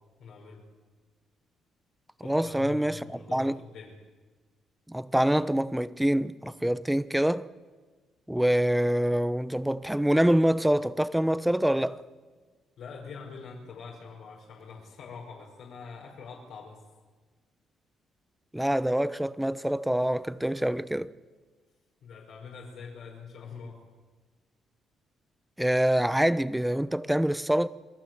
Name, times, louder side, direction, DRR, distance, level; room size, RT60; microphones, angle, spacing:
voice 1, 0.2-0.6 2.2-3.9 12.8-16.8 22.0-23.8, left 5 dB, 75° left, 5.8 m, -44 dB
voice 2, 2.2-3.6 4.9-7.5 8.3-12.0 18.5-21.1 25.6-27.7, right 1 dB, 5° right, 0.9 m, -25 dB
28.5 x 20.5 x 7.9 m
cardioid pair, 90°, 0 cm